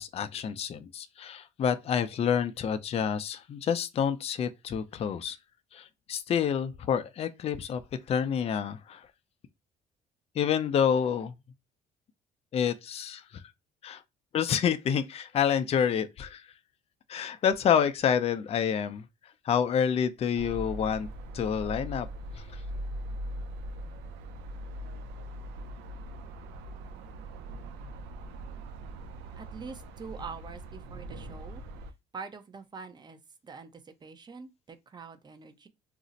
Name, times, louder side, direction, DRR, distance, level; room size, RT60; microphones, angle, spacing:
voice 1, 0.0-5.4 5.7-7.8 8.1-9.1 10.4-11.3 12.5-13.4 13.8-14.0 14.3-16.5 17.1-19.1 19.4-21.1 21.3-22.1 22.3-22.6, left 8 dB, 35° left, 0.4 m, -28 dB
sound 1, 20.3-31.9, right 1 dB, 90° right, 0.4 m, -41 dB
voice 2, 29.4-31.6 32.1-35.7, right 5 dB, 25° right, 0.5 m, -44 dB
2.5 x 2.0 x 3.9 m
cardioid pair, 110°, 17 cm